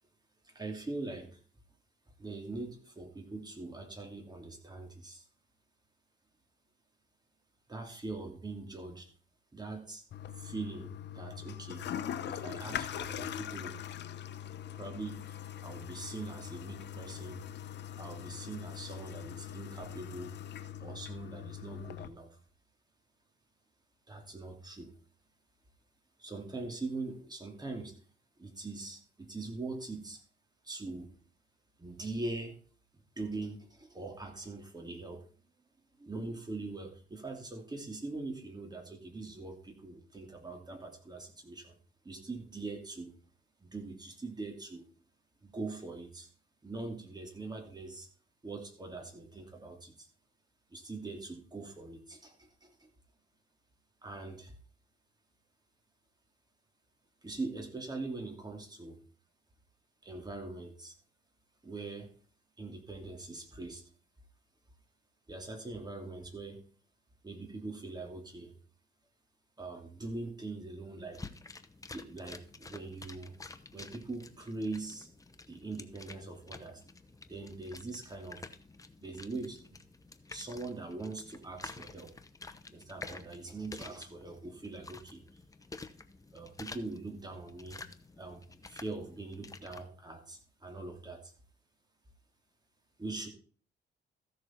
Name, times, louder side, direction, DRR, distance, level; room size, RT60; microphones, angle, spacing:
voice 1, 0.4-1.4 2.2-5.2 7.7-9.1 9.5-10.0 10.4-11.8 12.2-13.8 14.8-17.4 18.0-20.3 20.8-22.4 24.1-24.9 26.2-28.0 28.4-30.2 30.6-31.1 31.8-32.6 32.9-35.2 36.0-41.8 42.0-43.1 43.6-44.9 45.4-46.3 46.6-48.1 48.4-50.1 50.7-52.9 54.0-54.5 57.2-59.0 60.0-60.9 61.6-62.1 62.6-63.8 65.3-66.6 67.2-68.5 69.6-71.2 71.9-73.3 73.7-75.1 75.5-76.8 77.3-78.5 79.0-79.8 80.3-82.1 82.7-85.2 86.3-87.8 88.2-91.3 93.0-93.3, right 3 dB, 20° right, 3 dB, 2.9 m, -42 dB
Toilet flush, 10.1-22.1, left 10 dB, 60° left, 0.8 m, -42 dB
sound 1, 71.1-89.8, left 3 dB, 15° left, 0.9 m, -50 dB
14.5 x 6.7 x 4.5 m, 0.42 s
cardioid pair, 90°, 20 cm